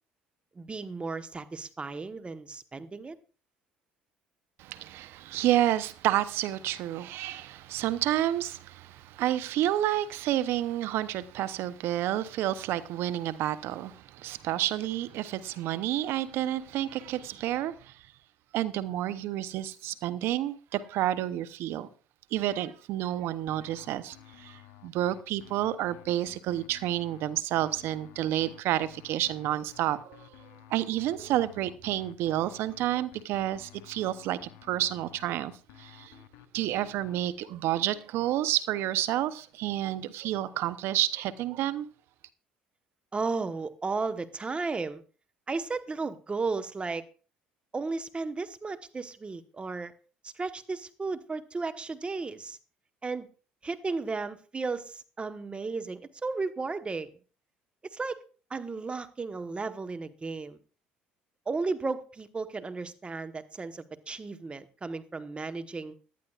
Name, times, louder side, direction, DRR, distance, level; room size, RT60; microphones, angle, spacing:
voice 1, 0.6-3.2 43.1-45.0 45.5-47.0 47.7-49.9 50.2-52.6 53.0-53.3 53.6-57.1 57.9-58.2 58.5-60.6 61.5-66.0, right 4 dB, 25° right, 1.1 m, -34 dB
voice 2, 4.6-18.0 18.5-21.9 22.3-30.3 30.7-35.5 35.8-36.1 36.5-41.9, right 13 dB, 70° right, 0.7 m, -30 dB
sound 1, 23.5-37.2, left 13 dB, 80° left, 0.8 m, -53 dB
18.0 x 11.5 x 2.4 m
supercardioid pair, 70°, 4 cm